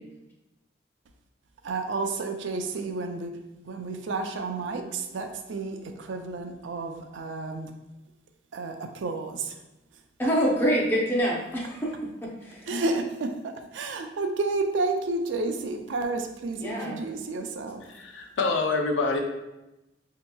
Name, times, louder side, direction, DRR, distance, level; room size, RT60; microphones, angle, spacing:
voice 1, 1.6-3.3 3.7-7.7 8.5-9.6 12.7-17.8, right 3 dB, 90° right, 5 dB, 0.4 m, -31 dB
voice 2, 10.2-12.7 16.6-17.0, equal, 10° left, -4 dB, 0.5 m, -26 dB
voice 3, 17.8-19.2, left 3 dB, 90° left, 3 dB, 0.5 m, -26 dB
5.3 x 2.8 x 2.2 m, 0.97 s
head